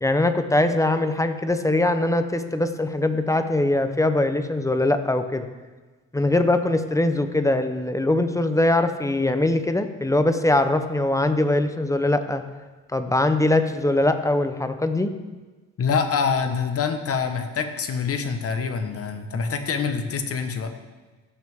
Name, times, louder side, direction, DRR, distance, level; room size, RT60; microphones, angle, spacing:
voice 1, 0.0-5.5 6.1-12.4 12.9-15.1, left 2 dB, 10° left, 8 dB, 0.7 m, -22 dB
voice 2, 15.8-20.7, left 6 dB, 50° left, 7 dB, 1.2 m, -25 dB
15.0 x 6.2 x 3.6 m, 1.3 s
cardioid pair, 90°, 30 cm